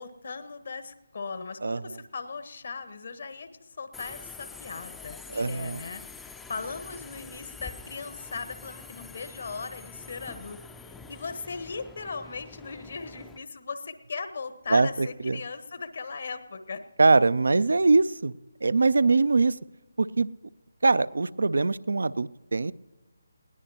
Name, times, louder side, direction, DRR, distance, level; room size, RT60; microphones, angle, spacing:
voice 1, 0.0-10.6 10.9-16.8, left 4 dB, 55° left, 10 dB, 1.2 m, -38 dB
Subway metro underground, 3.9-13.4, left 4 dB, 5° left, 0.5 m, -46 dB
voice 2, 5.3-5.8 14.7-15.4 17.0-18.3 18.6-19.6 20.0-20.3 20.8-22.7, right 3 dB, 65° right, 19 dB, 0.4 m, -22 dB
20.5 x 17.0 x 2.9 m, 1.2 s
figure-of-eight pair, 150°, 0 cm